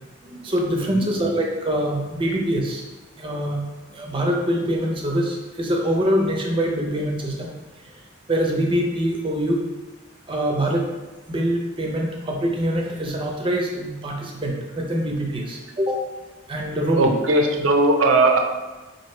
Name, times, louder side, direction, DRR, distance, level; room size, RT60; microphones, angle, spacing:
voice 1, 0.2-2.8 3.2-3.6 3.9-7.5 7.8-7.9 8.3-9.6 10.3-10.9 11.3-16.0 16.5-17.1, equal, 25° right, 0 dB, 0.5 m, -24 dB
voice 2, 16.9-18.4, right 2 dB, 90° right, 3 dB, 0.5 m, -18 dB
3.1 x 2.6 x 4.2 m, 1.2 s
head